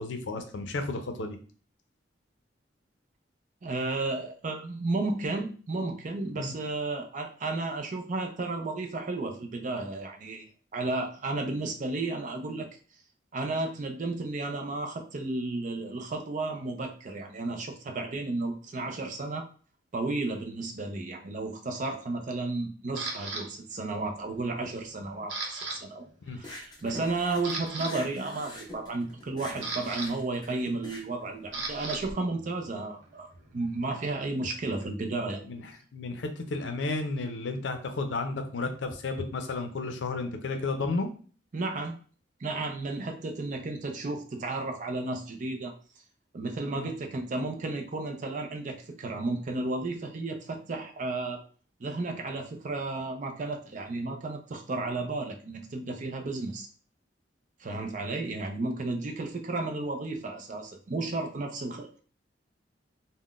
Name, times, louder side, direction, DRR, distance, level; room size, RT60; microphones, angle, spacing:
voice 1, 0.0-1.4 6.4-6.5 26.2-26.4 35.4-35.6 35.9-41.1 46.7-46.9, left 3 dB, 80° left, 6 dB, 0.5 m, -32 dB
voice 2, 3.6-12.7 13.3-19.5 19.9-35.4 41.5-41.9 42.4-45.7 46.3-51.4 51.8-56.7 57.6-61.9, right 2 dB, 45° right, 4 dB, 0.4 m, -33 dB
Camera, 23.0-23.4 24.0-24.4 24.7-25.8 26.0-26.2 26.8-26.9 27.3-27.9 29.1-32.0 32.3-34.9, right 3 dB, 80° right, 0.7 m, -37 dB
sound 1, 26.4-32.1, left 1 dB, 25° left, 0.6 m, -45 dB
3.7 x 2.1 x 2.4 m, 0.41 s
head